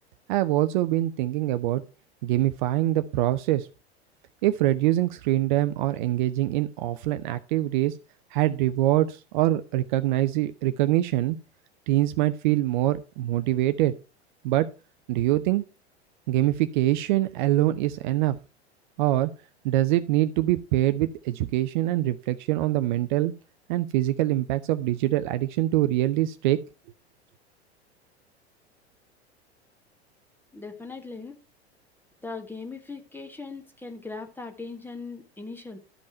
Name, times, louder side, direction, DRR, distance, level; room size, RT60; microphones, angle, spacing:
voice 1, 0.3-1.8 2.2-3.7 4.4-7.9 8.3-11.4 11.9-13.9 14.4-14.7 15.1-15.6 16.3-18.4 19.0-19.3 19.6-23.3 23.7-26.6, right 15 dB, 45° right, 12 dB, 0.6 m, -24 dB
voice 2, 30.5-31.3 32.2-35.8, left 4 dB, 5° left, 6 dB, 1.4 m, -39 dB
12.5 x 5.3 x 4.4 m, 0.32 s
figure-of-eight pair, 85°, 33 cm